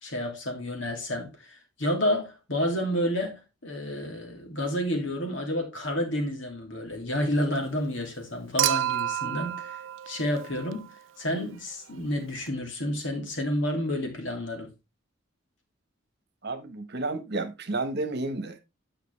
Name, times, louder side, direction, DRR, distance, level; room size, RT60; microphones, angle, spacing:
voice 1, 0.0-10.9 11.2-14.7, left 1 dB, 70° left, 2.6 m, -30 dB
Human group actions / Chink clink / Liquid, 8.6-11.0 12.5-12.6, right 13 dB, 75° right, 0.4 m, -29 dB
voice 2, 16.4-18.6, right 2 dB, 55° right, 1.2 m, -31 dB
9.2 x 5.8 x 3.3 m
head